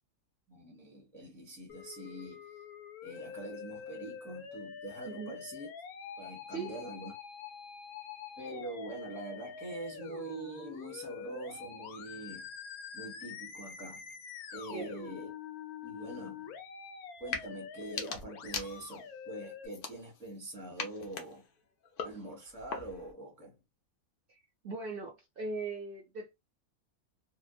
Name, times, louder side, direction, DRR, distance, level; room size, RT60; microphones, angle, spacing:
voice 1, 0.5-2.4 3.0-5.7 6.2-7.1 8.4-12.5 12.9-14.1 14.5-15.3 15.8-16.5 17.2-21.4 22.0-23.6, right 2 dB, ahead, 0.9 m, -44 dB
Musical instrument, 1.7-19.7, left 7 dB, 90° left, 1.1 m, -46 dB
voice 2, 5.0-5.4 6.5-6.8 14.7-15.2 24.3-26.3, right 4 dB, 65° right, 0.5 m, -40 dB
sound 1, 17.2-17.5 17.8-19.1 19.7-20.4 20.8-23.1, left 5 dB, 55° left, 0.6 m, -41 dB
2.8 x 2.1 x 2.3 m
omnidirectional pair, 1.5 m